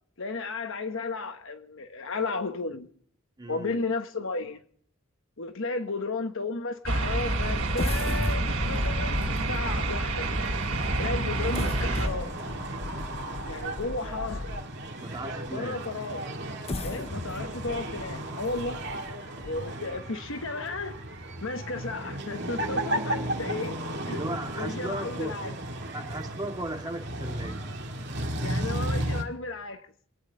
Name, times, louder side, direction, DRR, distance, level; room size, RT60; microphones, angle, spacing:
voice 1, 0.2-2.9 3.5-4.6 5.4-10.4 11.0-12.3 13.4-14.5 15.5-16.3 16.8-18.9 19.4-21.0 21.4-23.8 24.0-24.2 24.6-25.5 28.4-29.9, left 3 dB, 65° left, 1.3 m, -34 dB
voice 2, 3.4-3.8 15.0-15.9 24.1-25.3 25.9-27.6, right 1 dB, 20° right, 2.0 m, -36 dB
sound 1, 6.9-12.1, right 2 dB, 80° right, 2.7 m, -28 dB
sound 2, 7.7-14.9 15.5-15.6 16.4-20.0 20.4-20.5 21.0-21.2, left 2 dB, 30° left, 0.5 m, -36 dB
sound 3, 10.1-29.2, right 1 dB, 55° right, 1.9 m, -35 dB
27.0 x 9.7 x 3.9 m
head